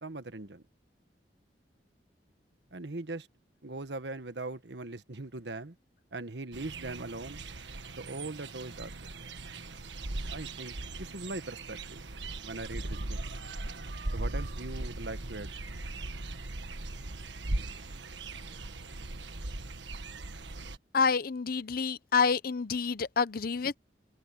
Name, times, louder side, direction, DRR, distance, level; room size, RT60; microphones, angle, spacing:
voice 1, 0.0-0.6 2.7-3.3 3.6-5.7 6.1-7.4 8.0-9.3 10.3-12.0 12.4-13.2 14.1-15.5, right 2 dB, 70° right, 1.4 m, -40 dB
sound 1, 6.5-20.8, right 2 dB, 85° right, 1.5 m, -39 dB
voice 2, 20.9-23.8, left 5 dB, 55° left, 0.7 m, -28 dB
head